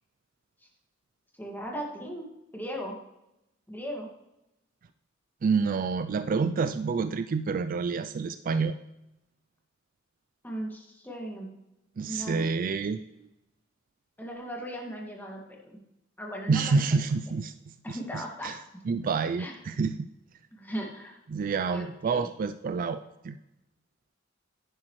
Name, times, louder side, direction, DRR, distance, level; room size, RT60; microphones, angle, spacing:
voice 1, 1.4-3.0 3.7-4.1 10.4-11.5 12.0-12.4 14.2-15.8 16.2-17.0 17.8-18.6 19.4-19.5 20.5-21.2 21.7-22.3, equal, 10° left, -1 dB, 2.0 m, -37 dB
voice 2, 5.4-8.7 12.0-13.0 16.5-17.5 17.9-18.0 18.4-18.6 18.9-20.0 21.3-23.4, right 4 dB, 45° right, 12 dB, 0.4 m, -28 dB
10.5 x 9.9 x 3.2 m, 0.89 s
head